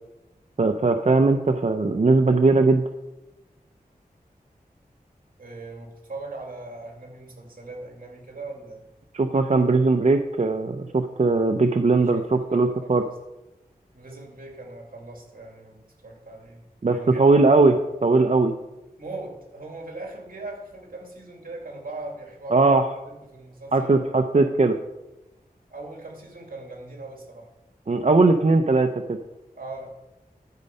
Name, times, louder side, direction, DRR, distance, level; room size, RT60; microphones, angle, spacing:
voice 1, 0.6-2.8 9.1-13.0 16.8-18.5 22.5-22.9 23.7-24.8 27.9-29.2, right 3 dB, 45° right, 6 dB, 0.6 m, -19 dB
voice 2, 5.4-8.8 11.9-13.2 13.9-16.6 16.9-17.3 19.0-24.1 25.7-27.5 29.5-29.9, right 2 dB, 65° right, 0 dB, 2.7 m, -40 dB
12.5 x 5.4 x 5.4 m, 1.0 s
wide cardioid pair, 50°, 16 cm